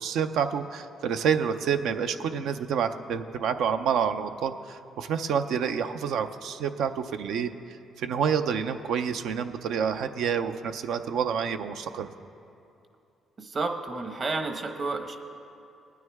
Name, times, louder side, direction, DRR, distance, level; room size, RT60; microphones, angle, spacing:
voice 1, 0.0-7.5 8.0-12.1, right 7 dB, 80° right, 8 dB, 0.5 m, -28 dB
voice 2, 13.4-15.2, right 3 dB, 45° right, 6 dB, 1.1 m, -31 dB
20.0 x 9.4 x 3.5 m, 2.6 s
cardioid pair, 90°, 0 cm